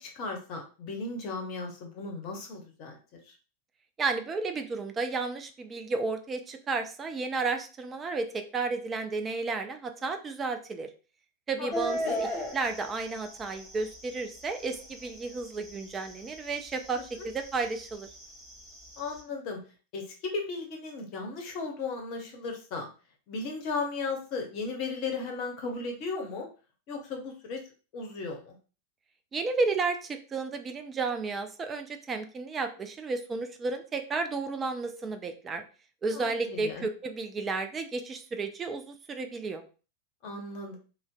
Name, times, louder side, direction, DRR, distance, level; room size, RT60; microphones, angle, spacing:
voice 1, 0.0-3.3 11.6-12.2 16.9-17.3 19.0-19.6 19.9-22.9 23.3-26.5 26.9-27.6 27.9-28.6 36.1-36.9 40.2-40.8, left 4 dB, 40° left, 2 dB, 0.7 m, -36 dB
voice 2, 4.0-10.9 11.5-18.1 29.3-35.6 36.0-39.6, right 4 dB, 20° right, 7 dB, 0.3 m, -32 dB
sound 1, 11.7-19.2, equal, 5° left, 0.8 m, -39 dB
2.5 x 2.0 x 2.4 m, 0.36 s
figure-of-eight pair, 90°, 0 cm